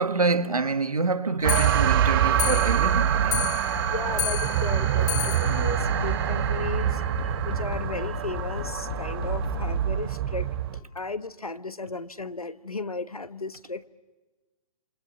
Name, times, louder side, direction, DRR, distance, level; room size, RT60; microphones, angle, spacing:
voice 1, 0.0-3.6, right 3 dB, 80° right, 1.6 m, -26 dB
Clock, 1.4-6.9 7.2-7.3 7.6-7.7 8.0-8.1 8.4-8.5 9.2-9.3 10.0-10.1 10.8-10.9, left 13 dB, 20° left, 1.6 m, -34 dB
sound 1, 1.4-10.8, right 11 dB, 40° right, 1.1 m, -25 dB
sound 2, 3.7-9.8, left 10 dB, 45° left, 1.0 m, -36 dB
voice 2, 3.8-7.1 7.4-10.5 10.9-13.9, left 3 dB, 85° left, 1.3 m, -35 dB
28.5 x 28.0 x 7.0 m
figure-of-eight pair, 125°, 18 cm